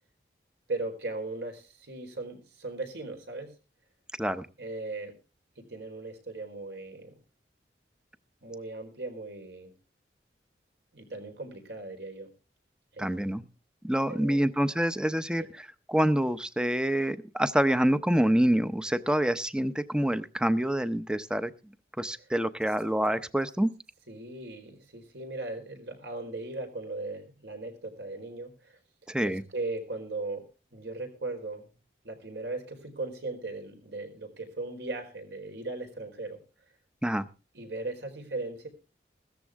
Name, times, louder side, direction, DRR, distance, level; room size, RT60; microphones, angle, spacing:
voice 1, 0.7-3.5 4.6-5.1 5.6-7.1 8.4-9.7 10.9-12.3 12.9-13.3 14.1-14.5 15.4-15.5 24.1-28.8 29.2-30.4 30.7-31.6 32.0-36.4 37.5-38.7, right 2 dB, 80° right, 5 dB, 4.3 m, -38 dB
voice 2, 13.0-13.4 13.8-21.5 22.0-23.7 29.1-29.4 37.0-37.3, right 1 dB, 5° right, 13 dB, 0.6 m, -26 dB
16.5 x 13.5 x 3.5 m, 0.33 s
head